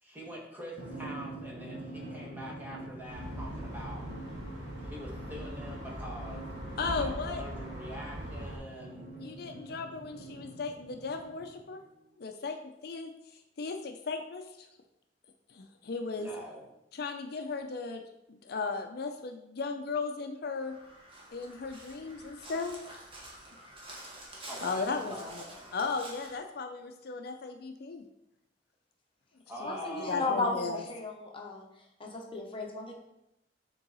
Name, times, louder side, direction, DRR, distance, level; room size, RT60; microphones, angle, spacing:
voice 1, 0.0-4.1 4.8-6.5 6.9-9.1 16.1-16.6 24.5-25.7 29.5-30.5, equal, 10° right, -3 dB, 1.4 m, -44 dB
Drum, 0.8-11.8, right 2 dB, 50° right, 1.4 m, -45 dB
sound 1, 3.1-8.6, equal, 75° right, 2.1 m, -41 dB
voice 2, 6.8-7.4 9.2-11.8 12.2-13.1 13.6-14.4 15.5-16.3 16.9-18.0 18.3-20.8 21.3-22.8 24.6-25.4 25.7-28.0 29.6-29.7 30.0-30.8, left 4 dB, 60° left, 5 dB, 0.5 m, -36 dB
Crow, 20.5-26.4, right 1 dB, 30° right, 1.2 m, -48 dB
voice 3, 29.6-31.6 32.0-32.9, left 3 dB, 30° left, 0 dB, 0.9 m, -34 dB
7.3 x 3.9 x 4.0 m, 0.86 s
head